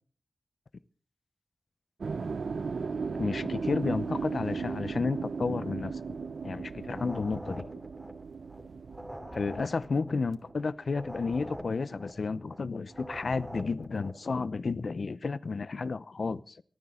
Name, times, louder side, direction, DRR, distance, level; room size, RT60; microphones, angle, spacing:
sound 1, 2.0-12.1 12.4-14.0, right 5 dB, 85° right, 0.6 m, -37 dB
voice 1, 3.2-6.2 6.4-7.6 9.3-16.6, left 4 dB, 75° left, 17 dB, 0.7 m, -32 dB
sound 2, 6.9-8.6 8.9-12.6 12.9-14.2, equal, 5° right, 2.9 m, -44 dB
24.5 x 9.6 x 3.8 m, 0.43 s
cardioid pair, 50°, 0 cm